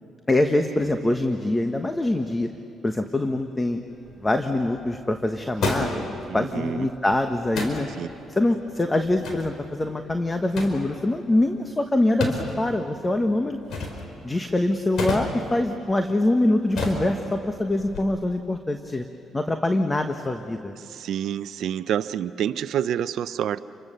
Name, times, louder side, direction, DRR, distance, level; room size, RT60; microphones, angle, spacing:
voice 1, 0.3-2.5 2.8-3.8 4.2-7.9 8.3-13.6 14.2-19.0 19.3-20.7, left 1 dB, 20° left, 6 dB, 1.3 m, -24 dB
sound 1, 3.9-18.0, left 2 dB, 65° left, 4.7 m, -34 dB
voice 2, 6.3-6.9 8.0-8.1 20.9-23.6, right 10 dB, 75° right, 12 dB, 0.6 m, -28 dB
29.5 x 24.0 x 6.9 m, 2.7 s
cardioid pair, 90°, 0 cm